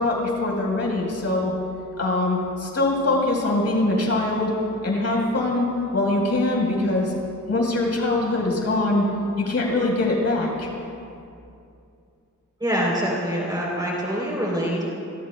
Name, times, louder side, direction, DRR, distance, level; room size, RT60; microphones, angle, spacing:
voice 1, 0.0-1.5 2.0-4.5 4.8-5.7 5.9-7.1 7.5-9.0 9.4-10.7, left 2 dB, 55° left, -2 dB, 4.6 m, -23 dB
voice 2, 12.6-14.9, equal, 15° right, -4 dB, 3.6 m, -25 dB
28.0 x 22.0 x 2.3 m, 2.6 s
wide cardioid pair, 125°, 31 cm